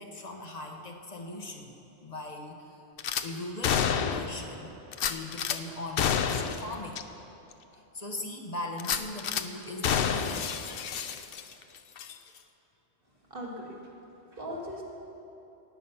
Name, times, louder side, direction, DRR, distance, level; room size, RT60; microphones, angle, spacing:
voice 1, 0.0-2.8 3.2-4.7 5.0-7.0 7.7-10.6, left 2 dB, 35° left, 2 dB, 1.1 m, -40 dB
Gunshot gunfire / Glass, 3.0-3.2 3.6-4.4 4.9-5.6 6.0-6.6 6.9-7.0 7.5-7.6 8.8-9.4 9.8-11.6 12.0-12.1, left 7 dB, 60° left, 0.7 m, -29 dB
voice 2, 13.3-14.0 14.3-14.8, equal, 45° right, -2 dB, 2.2 m, -39 dB
17.5 x 9.3 x 5.8 m, 3.0 s
omnidirectional pair, 1.2 m